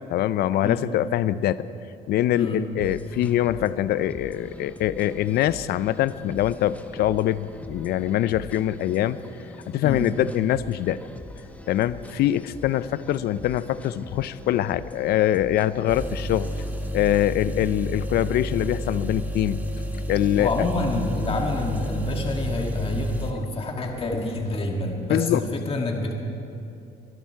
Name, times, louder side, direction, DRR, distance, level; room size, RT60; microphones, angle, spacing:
voice 1, 0.1-1.6 2.1-9.2 9.7-11.0 11.7-16.5 16.9-19.6 20.1-20.5 25.1-25.4, left 12 dB, 70° left, 16 dB, 0.5 m, -24 dB
sound 1, 2.8-16.9, left 2 dB, 10° left, 0.9 m, -43 dB
sound 2, 15.9-23.3, equal, 10° right, 1.5 m, -30 dB
voice 2, 20.4-26.1, left 2 dB, 35° left, 2 dB, 1.8 m, -27 dB
23.5 x 12.0 x 4.7 m, 2.7 s
cardioid pair, 110°, 17 cm